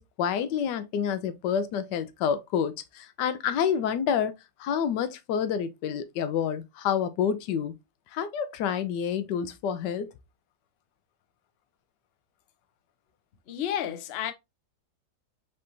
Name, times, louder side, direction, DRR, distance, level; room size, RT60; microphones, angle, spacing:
voice 1, 0.0-4.3 4.6-7.7 8.1-10.1, left 8 dB, 90° left, 1.3 m, -28 dB
voice 2, 13.5-14.3, left 10 dB, 60° left, 0.6 m, -31 dB
5.2 x 3.4 x 2.5 m
omnidirectional pair, 1.8 m